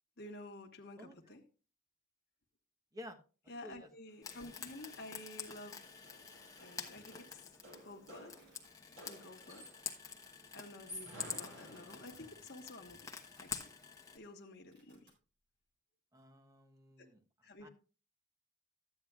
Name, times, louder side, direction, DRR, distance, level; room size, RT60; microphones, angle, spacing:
voice 1, 0.2-1.4 3.5-5.9 6.6-7.4 7.8-8.4 8.9-9.7 10.5-13.7 14.1-15.1 17.0-17.1 17.4-17.7, left 2 dB, 50° left, 1.3 m, -51 dB
voice 2, 1.0-1.4 2.9-3.2 3.6-3.9 4.2-4.3 16.1-17.2 17.6-17.7, equal, 20° right, 1.0 m, -52 dB
sound 1, 4.1-4.2 4.4-10.0 10.7-12.5, equal, 80° right, 6.0 m, -54 dB
Frying (food), 4.2-14.2, left 6 dB, 15° left, 1.0 m, -48 dB
Domestic sounds home sounds, 7.9-8.7 9.2-9.5 9.7-10.3 10.9-11.0 11.4-12.1 12.5-12.6 12.9-13.8 14.1-14.3 14.5-15.2, right 2 dB, 55° right, 3.8 m, -71 dB
12.5 x 9.2 x 2.4 m
head